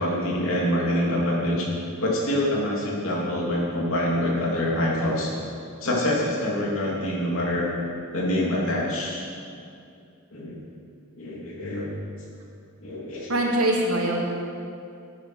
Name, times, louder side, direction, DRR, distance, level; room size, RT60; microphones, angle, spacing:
voice 1, 0.0-1.7 2.0-5.3 5.8-7.7 8.1-9.2 10.3-10.6 11.2-11.9 12.8-13.4, left 1 dB, 65° left, -4 dB, 3.0 m, -25 dB
voice 2, 13.3-14.3, right 1 dB, 90° right, -1 dB, 2.3 m, -23 dB
11.5 x 9.7 x 6.3 m, 2.4 s
head